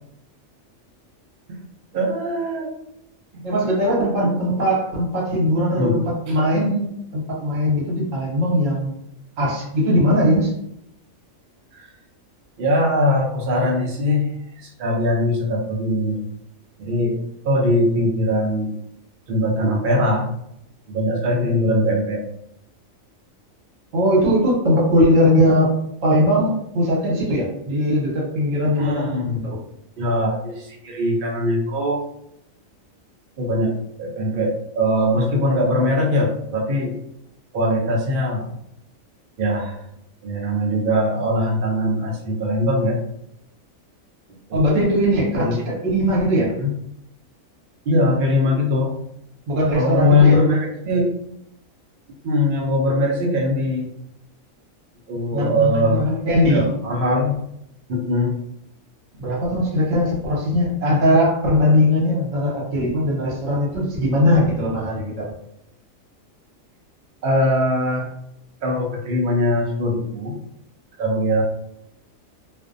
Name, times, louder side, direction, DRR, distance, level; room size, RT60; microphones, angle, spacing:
voice 1, 1.9-2.7 4.2-4.3 5.8-6.0 6.3-6.4 11.7-11.9 12.6-14.3 14.6-16.3 16.8-17.2 17.4-18.7 19.3-20.3 20.9-22.2 28.8-29.4 30.0-32.0 33.4-33.7 34.0-36.9 37.5-38.5 39.4-39.7 40.2-43.0 44.5-44.6 45.3-45.6 46.6-46.7 47.9-48.9 49.7-50.6 50.9-51.1 52.2-53.9 55.1-56.0 56.5-57.4 57.9-58.3 67.2-68.1 68.6-70.4 71.0-71.4, left 1 dB, 55° right, -1 dB, 0.6 m, -21 dB
voice 2, 3.4-9.0 9.4-10.5 23.9-25.7 26.0-29.2 44.5-46.5 49.5-50.4 55.3-56.7 59.2-65.3, equal, 70° right, -4 dB, 1.2 m, -20 dB
2.5 x 2.1 x 2.5 m, 0.75 s
omnidirectional pair, 1.4 m